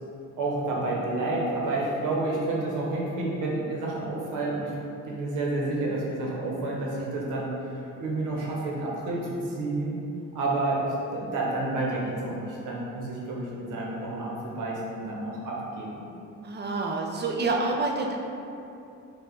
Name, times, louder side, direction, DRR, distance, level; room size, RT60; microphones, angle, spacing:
voice 1, 0.4-4.7 5.0-10.0 10.3-16.0, right 2 dB, 85° right, -3 dB, 1.0 m, -30 dB
voice 2, 16.4-18.2, right 3 dB, 35° right, 0 dB, 0.6 m, -27 dB
4.7 x 2.4 x 3.9 m, 2.7 s
cardioid pair, 90°, 30 cm